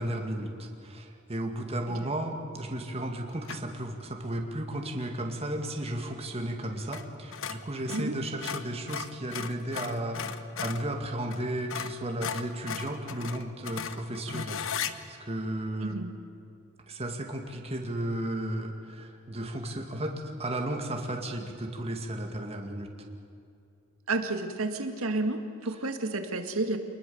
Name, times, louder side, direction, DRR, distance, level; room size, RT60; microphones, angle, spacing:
voice 1, 0.0-16.0 16.9-23.1, right 1 dB, 30° right, 3 dB, 2.2 m, -34 dB
sound 1, 3.5-3.8 6.9-7.1 7.3-10.9 11.3-11.4 11.7-14.9, left 7 dB, 65° left, 1.1 m, -36 dB
voice 2, 24.1-26.8, right 2 dB, 75° right, 6 dB, 2.0 m, -31 dB
27.5 x 20.5 x 7.1 m, 2.5 s
head